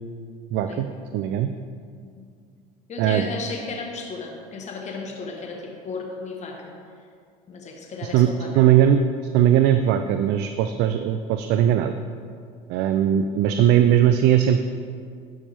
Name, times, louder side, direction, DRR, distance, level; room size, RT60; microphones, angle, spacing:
voice 1, 0.5-0.9 1.1-1.5 3.0-3.3 8.1-8.3 8.6-9.0 9.3-11.9 12.7-14.7, right 10 dB, 65° right, 8 dB, 0.4 m, -19 dB
voice 2, 2.9-6.7 7.5-8.5, left 3 dB, 35° left, 0 dB, 1.3 m, -34 dB
12.0 x 5.3 x 3.5 m, 2.2 s
supercardioid pair, 85°, 19 cm